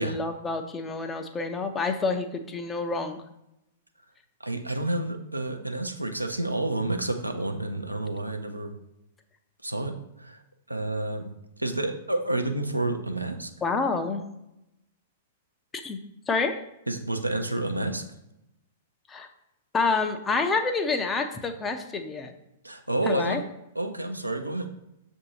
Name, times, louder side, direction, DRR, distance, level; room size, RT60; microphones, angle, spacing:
voice 1, 0.0-3.2 13.6-14.2 15.8-16.0 16.3-16.6 19.1-19.3 19.7-22.3 23.1-23.4, left 4 dB, 15° left, 7 dB, 0.4 m, -28 dB
voice 2, 4.4-8.8 9.6-9.9 10.2-10.4 10.7-11.3 11.6-13.5 16.9-18.0 22.6-23.4 23.8-24.7, right 2 dB, 90° right, 5 dB, 0.4 m, -29 dB
6.6 x 2.6 x 2.8 m, 0.87 s
figure-of-eight pair, 105°, 0 cm